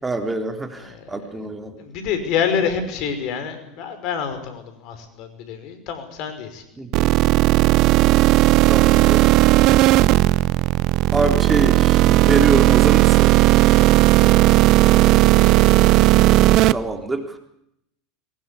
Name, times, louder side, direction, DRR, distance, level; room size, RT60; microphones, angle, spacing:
voice 1, 0.0-1.7 6.8-7.1 8.7-9.2 11.1-13.3 16.7-17.4, right 3 dB, 15° right, 5 dB, 3.9 m, -25 dB
voice 2, 0.8-1.5 1.8-6.6 13.6-13.9 14.2-15.6, left 7 dB, 55° left, 9 dB, 5.4 m, -28 dB
sound 1, 6.9-16.7, right 16 dB, 55° right, 0.8 m, -15 dB
22.5 x 20.0 x 8.5 m, 0.75 s
hypercardioid pair, 85°, 0 cm